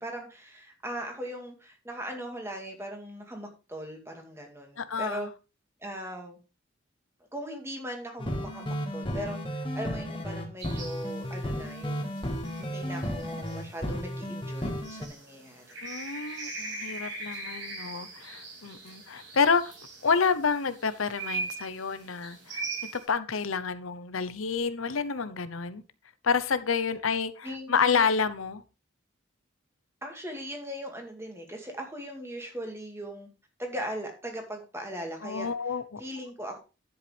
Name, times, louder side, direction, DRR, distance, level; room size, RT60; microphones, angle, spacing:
voice 1, 0.0-5.3 5.8-6.4 7.3-15.8 27.4-28.0 30.0-33.3 33.6-35.5 36.0-36.6, equal, 15° right, 2.2 m, -39 dB
voice 2, 4.8-5.3 15.8-19.7 20.0-22.7 22.9-25.8 26.2-28.6 35.2-36.0, left 5 dB, 85° left, 0.8 m, -29 dB
sound 1, 8.2-15.1, equal, 25° left, 1.7 m, -33 dB
sound 2, 10.6-23.0, right 3 dB, 65° right, 5.3 m, -41 dB
10.5 x 8.1 x 3.4 m
head